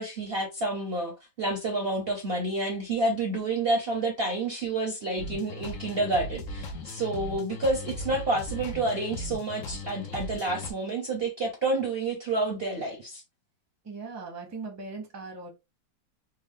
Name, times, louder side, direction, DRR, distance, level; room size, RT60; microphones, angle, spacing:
voice 1, 0.0-13.2, right 2 dB, 45° right, 0.8 m, -29 dB
sound 1, 5.2-10.7, left 1 dB, 65° left, 0.9 m, -38 dB
voice 2, 13.8-15.5, right 4 dB, 15° right, 0.7 m, -39 dB
3.5 x 2.0 x 3.5 m
omnidirectional pair, 1.8 m